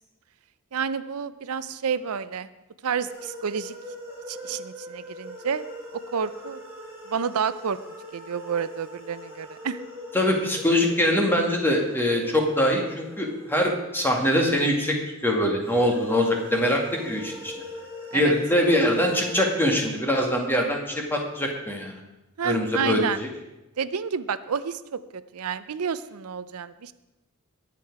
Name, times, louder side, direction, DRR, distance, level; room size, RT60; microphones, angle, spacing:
voice 1, 0.7-2.5 2.8-3.7 4.3-5.7 5.9-6.6 7.1-7.8 8.1-9.8 18.1-18.3 22.4-23.2 23.8-26.9, right 6 dB, 90° right, 14 dB, 0.6 m, -30 dB
sound 1, 3.1-14.8 15.6-19.3, left 1 dB, 10° right, 5.3 m, -41 dB
voice 2, 10.1-15.0 15.2-17.5 18.1-22.0 22.4-23.0, left 1 dB, 10° left, 1 dB, 2.1 m, -23 dB
20.0 x 7.6 x 4.8 m, 0.99 s
head